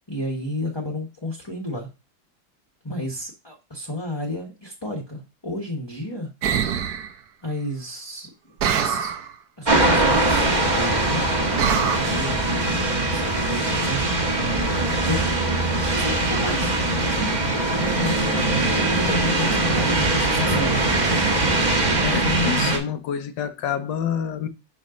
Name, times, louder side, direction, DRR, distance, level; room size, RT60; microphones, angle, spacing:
voice 1, 0.1-1.9 2.8-6.3 7.4-8.3 8.7-9.2 9.6-11.3 11.7-12.7 13.0-16.7 17.0-17.4 17.6-18.2 18.7-20.8, left 1 dB, 15° left, 1.1 m, -32 dB
sound 1, 6.4-7.1 8.6-9.3 11.6-12.0, right 8 dB, 65° right, 1.1 m, -23 dB
sound 2, 9.6-22.8, right 2 dB, 25° right, 1.3 m, -21 dB
voice 2, 22.0-24.5, left 8 dB, 75° left, 1.5 m, -28 dB
6.2 x 5.4 x 3.8 m
omnidirectional pair, 2.0 m